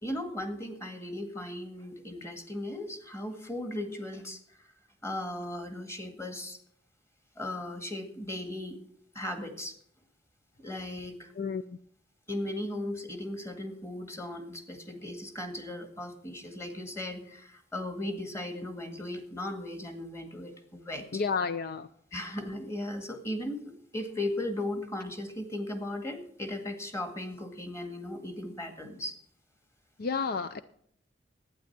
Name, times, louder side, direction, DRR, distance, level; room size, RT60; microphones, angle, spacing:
voice 1, 0.0-4.7 5.0-6.6 7.4-8.8 9.1-9.7 10.6-11.3 12.3-21.2 22.1-29.2, left 1 dB, 15° left, 6 dB, 1.9 m, -37 dB
voice 2, 21.1-21.9 30.0-30.6, left 5 dB, 55° left, 12 dB, 0.5 m, -31 dB
12.0 x 9.5 x 6.0 m, 0.65 s
head